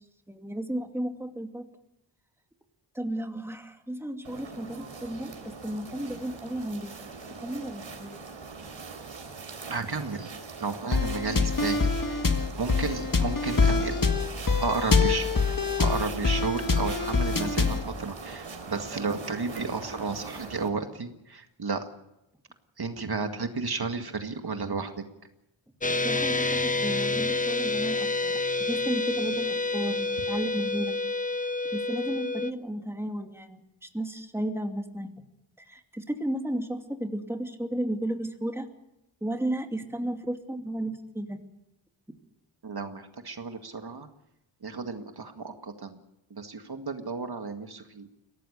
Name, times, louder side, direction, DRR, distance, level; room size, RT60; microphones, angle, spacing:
voice 1, 0.3-1.7 2.9-5.3 5.6-6.9 7.4-8.2 26.0-31.0 31.7-35.1 35.7-38.7 39.2-41.4, right 1 dB, 5° right, 4 dB, 2.5 m, -33 dB
sound 1, 4.2-20.7, right 4 dB, 85° right, 3.7 m, -41 dB
voice 2, 9.7-10.3 10.6-14.0 14.6-15.3 15.8-21.9 22.8-25.0 42.6-44.1 44.6-46.0 46.3-48.1, right 4 dB, 55° right, 6 dB, 2.0 m, -33 dB
sound 2, 10.9-17.9, left 4 dB, 45° left, 1.9 m, -25 dB
sound 3, 25.8-32.5, left 3 dB, 15° left, 1.0 m, -28 dB
22.5 x 17.5 x 6.7 m, 0.87 s
cardioid pair, 60°, 45 cm